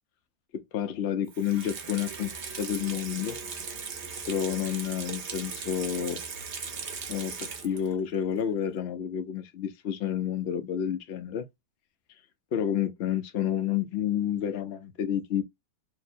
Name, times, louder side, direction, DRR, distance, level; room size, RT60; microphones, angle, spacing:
voice 1, 0.5-2.3 2.6-3.4 4.3-6.2 7.1-11.5 12.5-15.4, left 9 dB, 70° left, 0.6 m, -30 dB
Water tap faucet / Sink (filling or washing), 1.3-8.0 8.4-8.5, right 5 dB, 55° right, 0.7 m, -38 dB
2.8 x 2.2 x 4.1 m
omnidirectional pair, 1.7 m